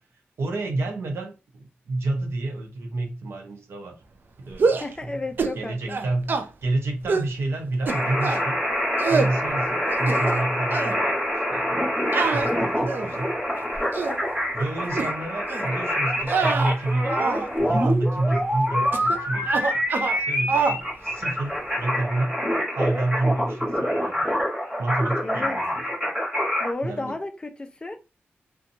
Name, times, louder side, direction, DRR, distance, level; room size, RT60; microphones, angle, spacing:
voice 1, 0.4-4.0 4.4-5.2 5.5-8.6 9.1-11.9 12.2-13.3 14.5-17.2 17.6-19.8 20.1-22.4 22.7-24.3 24.8-25.8 26.8-27.1, right 2 dB, 85° right, 0.7 m, -29 dB
sound 1, 4.5-4.9 5.4-5.6 5.9-6.5 7.1-7.3 7.9-8.4 9.0-9.3 9.9-10.4 10.7-11.0 12.1-13.2 13.7-14.2 14.9-15.1 15.5-15.7 16.2-17.5 17.7-18.0 18.9-19.2 19.4-20.2 20.5-20.8, right 4 dB, 55° right, 0.3 m, -25 dB
voice 2, 4.8-6.0 25.2-25.6 26.6-28.0, left 2 dB, 20° left, 0.4 m, -32 dB
sound 2, 7.9-26.7, equal, 5° right, 1.2 m, -26 dB
2.6 x 2.2 x 2.6 m
wide cardioid pair, 125°, 4 cm